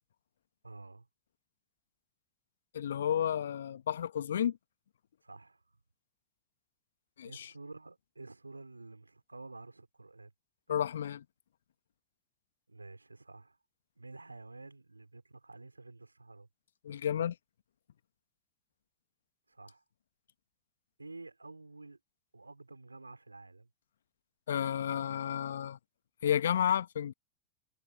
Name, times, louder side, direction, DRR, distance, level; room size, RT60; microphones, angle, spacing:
voice 1, 0.6-1.1 5.2-5.6 7.2-10.3 12.7-13.6 14.0-16.5 19.5-19.8 21.0-22.0 22.3-23.7, right 3 dB, 90° right, 3.1 m, -50 dB
voice 2, 2.7-4.6 7.2-7.5 10.7-11.2 16.8-17.3 24.5-25.8 26.2-27.1, left 9 dB, 70° left, 1.4 m, -31 dB
figure-of-eight pair, 90°, 0 cm